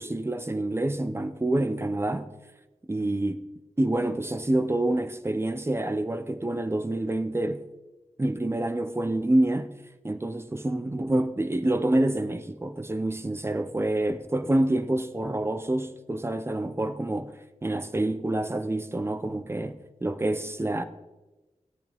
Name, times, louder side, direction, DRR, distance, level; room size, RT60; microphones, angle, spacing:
voice 1, 0.0-2.3 2.9-3.4 3.8-7.6 8.2-9.7 10.0-17.3 17.6-20.8, right 1 dB, 20° right, 0.6 m, -27 dB
18.0 x 8.5 x 3.5 m
wide cardioid pair, 100°, 12 cm